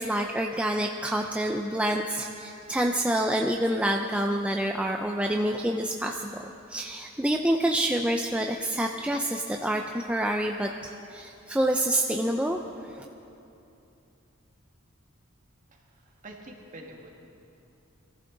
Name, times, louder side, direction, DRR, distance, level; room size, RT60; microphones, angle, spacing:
voice 1, 0.0-6.4 6.7-12.9, right 1 dB, 5° right, 2 dB, 0.5 m, -27 dB
voice 2, 15.7-17.1, right 1 dB, 40° right, 0 dB, 2.0 m, -46 dB
23.5 x 14.5 x 3.9 m, 2.8 s
head